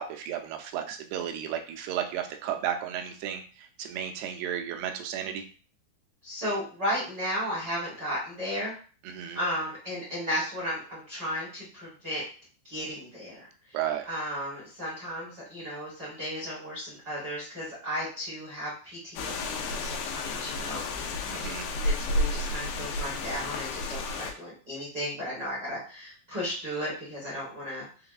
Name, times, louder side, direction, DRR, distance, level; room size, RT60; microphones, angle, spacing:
voice 1, 0.0-3.4 3.8-5.4 9.1-9.4 13.7-14.1 21.3-21.7, right 9 dB, 80° right, 4 dB, 2.4 m, -33 dB
voice 2, 6.2-8.8 9.3-12.2 12.6-13.8 14.0-27.8, equal, 55° right, -9 dB, 1.1 m, -35 dB
sound 1, 19.2-24.3, left 2 dB, 85° left, 2.8 m, -31 dB
6.5 x 2.2 x 2.4 m, 0.38 s
omnidirectional pair, 4.8 m